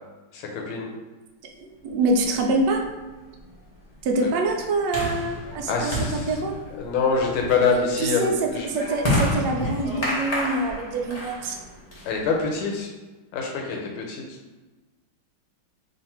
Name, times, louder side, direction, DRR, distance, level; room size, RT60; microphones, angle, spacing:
voice 1, 0.3-0.9 4.2-4.3 5.7-6.3 6.8-8.7 12.0-12.9 13.3-14.2, left 4 dB, 80° left, 0 dB, 1.5 m, -25 dB
voice 2, 1.6-2.8 4.0-6.5 8.0-11.6, right 2 dB, 70° right, 2 dB, 1.0 m, -25 dB
sound 1, 2.2-12.6, left 1 dB, 50° left, 0.4 m, -30 dB
3.2 x 2.5 x 4.3 m, 1.2 s
omnidirectional pair, 2.3 m